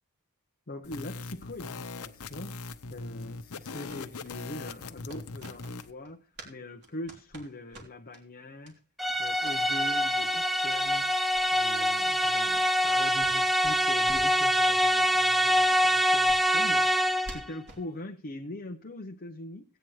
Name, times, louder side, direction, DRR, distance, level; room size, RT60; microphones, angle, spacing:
voice 1, 0.7-8.8 9.2-11.1 11.5-19.6, left 2 dB, 45° left, 0.8 m, -42 dB
sound 1, 0.8-5.9, left 3 dB, 85° left, 0.9 m, -41 dB
sound 2, 3.9-6.6 6.8-8.2 8.6-8.8 9.0-9.6 10.0-10.1 10.5-10.6 10.8-11.0 11.3-13.4 13.6-14.4 14.7-14.8 15.1-15.2 15.7-17.9, right 1 dB, 50° right, 3.2 m, -49 dB
sound 3, 9.0-17.5, equal, ahead, 0.5 m, -25 dB
17.5 x 9.2 x 3.2 m
head